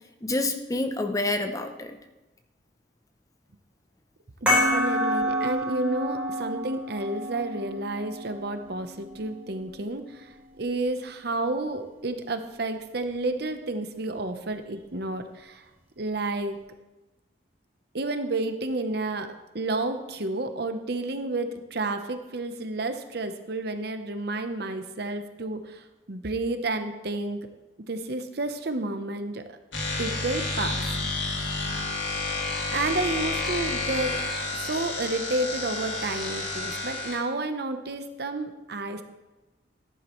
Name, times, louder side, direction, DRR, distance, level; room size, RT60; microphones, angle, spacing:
voice 1, 0.2-2.0 4.7-5.4 6.2-6.3, left 2 dB, 15° left, 7 dB, 0.6 m, -29 dB
voice 2, 4.4-15.6 16.0-16.6 17.9-27.4 27.9-29.5 30.0-31.4 32.7-34.2 34.6-39.0, right 2 dB, 55° right, 8 dB, 0.8 m, -31 dB
sound 1, 4.5-9.5, equal, 5° right, 4.3 m, -28 dB
sound 2, 29.7-37.2, left 3 dB, 75° left, 2.3 m, -30 dB
14.0 x 11.0 x 3.1 m, 1.1 s
head